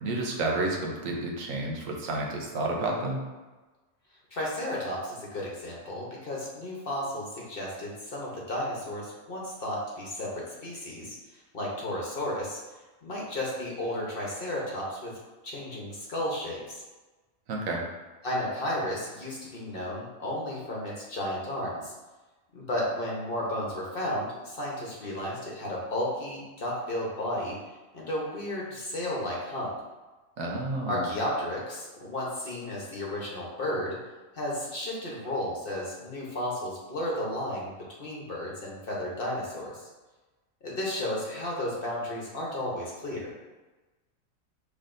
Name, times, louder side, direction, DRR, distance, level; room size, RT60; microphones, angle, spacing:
voice 1, 0.0-3.2 17.5-17.8 30.4-31.0, right 2 dB, 75° right, -1 dB, 1.2 m, -30 dB
voice 2, 4.3-11.2 11.5-12.6 13.0-15.1 15.4-16.8 18.2-21.9 22.5-27.6 27.9-29.7 30.8-34.0 34.3-37.7 38.0-39.8 40.6-43.3, left 1 dB, 45° left, -4 dB, 1.1 m, -33 dB
5.6 x 3.5 x 2.6 m, 1.2 s
omnidirectional pair, 1.4 m